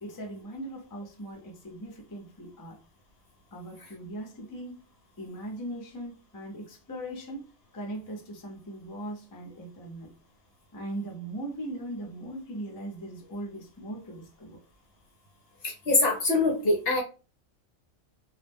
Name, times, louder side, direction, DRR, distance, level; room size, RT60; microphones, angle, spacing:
voice 1, 0.0-2.8 3.5-4.8 5.2-7.4 7.7-10.1 10.7-14.6, right 1 dB, 25° left, 0 dB, 0.4 m, -39 dB
voice 2, 15.6-17.0, left 2 dB, 60° left, 2 dB, 0.7 m, -24 dB
2.3 x 2.0 x 3.4 m, 0.34 s
omnidirectional pair, 1.3 m